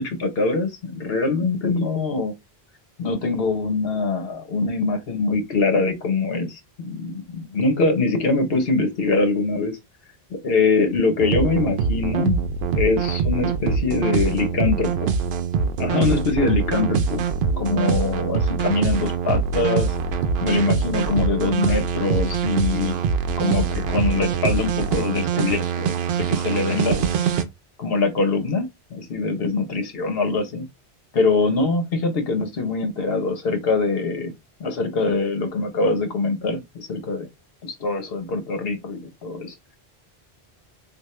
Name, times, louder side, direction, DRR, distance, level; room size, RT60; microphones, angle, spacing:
voice 1, 0.0-2.3 3.0-9.8 10.3-12.4 12.7-15.1 15.8-17.2 17.6-19.9 20.4-23.0 23.4-27.3 27.8-30.7 31.1-34.3 34.6-37.3 37.6-39.5, left 3 dB, 65° left, 1.1 m, -23 dB
sound 1, 11.2-27.4, right 6 dB, 75° right, 0.8 m, -23 dB
3.5 x 2.5 x 3.1 m
omnidirectional pair, 1.1 m